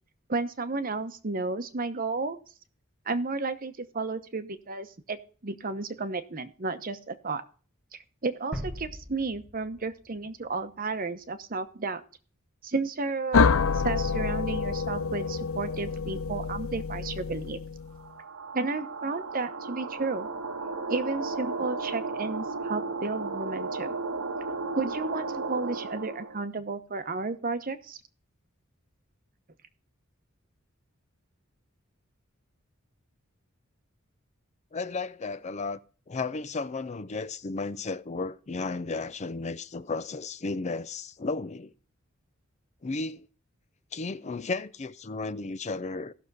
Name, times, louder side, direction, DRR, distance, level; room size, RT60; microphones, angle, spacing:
voice 1, 0.3-2.4 3.1-5.2 5.4-7.4 8.2-12.0 12.6-17.6 18.5-20.3 20.9-24.0 24.7-28.0, right 3 dB, 45° right, 0.9 m, -32 dB
sound 1, 8.5-11.4, equal, ahead, 1.6 m, -41 dB
sound 2, 13.3-18.0, left 5 dB, 80° left, 0.6 m, -27 dB
sound 3, 18.0-26.4, right 3 dB, 80° right, 1.3 m, -34 dB
voice 2, 34.7-35.8 36.1-41.7 42.8-43.3 43.9-46.1, left 3 dB, 35° left, 0.5 m, -34 dB
16.0 x 6.5 x 4.1 m
head